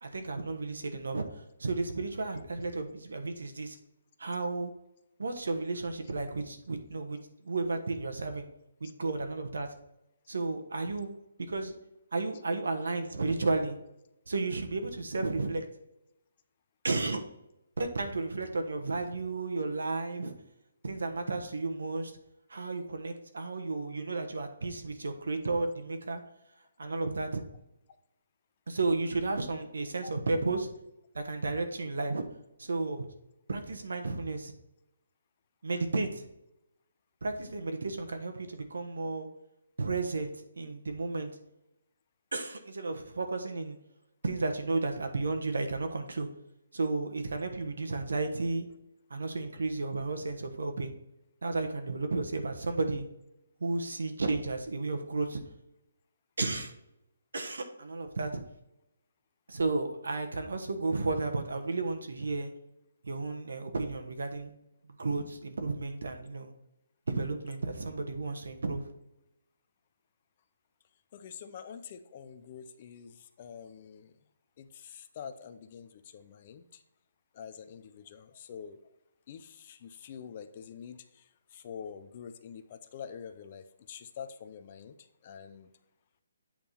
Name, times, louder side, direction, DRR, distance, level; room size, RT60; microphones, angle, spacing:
voice 1, 0.0-3.8 4.2-4.7 5.2-7.2 7.4-8.5 8.8-9.7 10.3-11.1 11.5-11.7 12.1-13.8 14.3-15.6 16.8-17.2 17.8-20.3 20.8-22.1 22.5-26.2 26.8-27.4 28.7-30.7 31.1-32.2 32.6-33.1 33.5-34.5 35.6-36.3 37.2-39.3 39.8-41.3 42.3-43.8 44.2-46.3 46.7-48.7 49.1-50.9 51.4-53.1 53.6-55.4 56.4-56.7 57.3-58.4 59.5-62.5 63.0-64.5 65.0-66.5 67.1-68.9, right 3 dB, 90° right, 6 dB, 1.2 m, -33 dB
voice 2, 71.1-74.1 74.6-76.8 77.3-78.8 79.3-85.7, left 7 dB, 25° left, 10 dB, 0.4 m, -46 dB
8.6 x 3.6 x 4.3 m, 0.86 s
hypercardioid pair, 175°, 0 cm